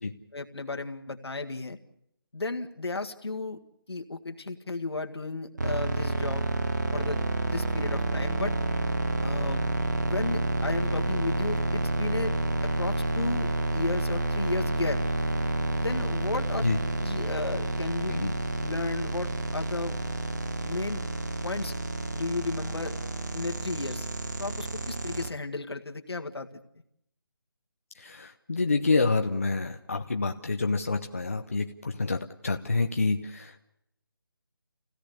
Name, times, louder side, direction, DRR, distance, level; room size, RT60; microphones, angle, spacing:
voice 1, 0.3-1.8 2.3-3.6 3.9-6.4 6.9-8.5 9.2-9.6 10.0-12.4 12.6-15.0 15.8-16.6 17.0-18.1 18.6-20.0 20.6-21.0 21.4-21.7 22.1-23.0 23.3-24.1 24.4-26.5, left 3 dB, 80° left, 5 dB, 1.9 m, -34 dB
sound 1, 5.6-25.3, right 2 dB, 45° right, 1.5 m, -29 dB
voice 2, 27.9-33.7, left 3 dB, 35° left, 4 dB, 0.8 m, -28 dB
28.0 x 17.0 x 6.8 m, 0.77 s
figure-of-eight pair, 180°, 13 cm